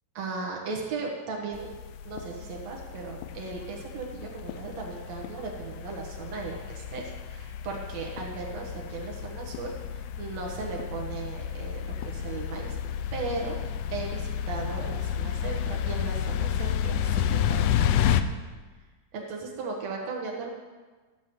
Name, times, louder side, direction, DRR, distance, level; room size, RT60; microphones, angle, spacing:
voice 1, 0.1-1.7 2.0-12.8 13.1-13.6 13.9-18.1 19.1-20.5, right 4 dB, 90° right, -2 dB, 1.5 m, -37 dB
sound 1, 1.5-18.2, left 9 dB, 85° left, 2.4 m, -31 dB
13.5 x 6.0 x 7.7 m, 1.3 s
omnidirectional pair, 5.3 m